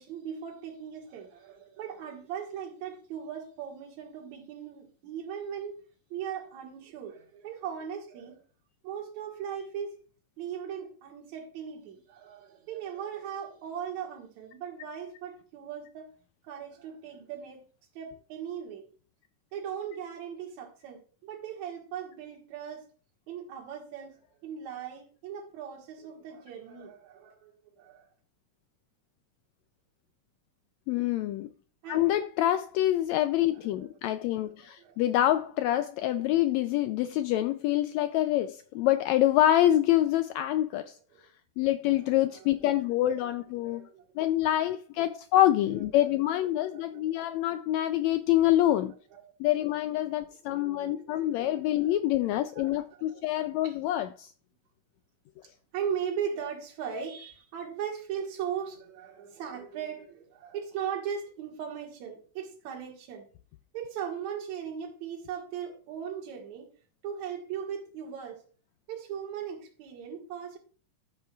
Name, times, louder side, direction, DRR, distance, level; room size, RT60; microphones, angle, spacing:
voice 1, 0.0-5.8 6.1-8.4 8.8-10.0 10.4-16.1 16.4-17.6 17.9-18.9 19.5-22.8 23.3-27.5 27.8-28.1 31.8-32.1 34.1-35.0 40.5-40.6 41.1-41.2 42.0-42.5 43.2-43.3 43.6-44.3 45.6-46.2 46.7-47.2 49.1-49.2 50.5-51.9 52.4-53.8 55.7-63.3 63.7-66.7 67.0-68.4 68.9-70.6, right 8 dB, 65° right, 2.9 m, -39 dB
voice 2, 30.9-31.5 31.9-40.9 41.6-43.8 44.2-48.9 49.4-54.3, left 13 dB, 85° left, 1.6 m, -26 dB
14.0 x 7.5 x 2.3 m
omnidirectional pair, 3.7 m